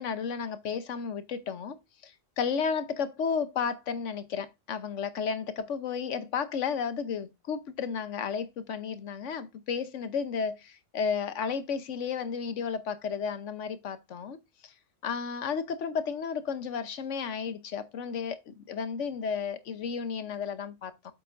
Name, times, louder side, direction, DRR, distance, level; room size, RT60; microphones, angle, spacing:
voice 1, 0.0-1.8 2.0-14.7 15.0-20.9, left 6 dB, 80° left, 1.2 m, -33 dB
7.9 x 7.5 x 2.6 m
omnidirectional pair, 1.2 m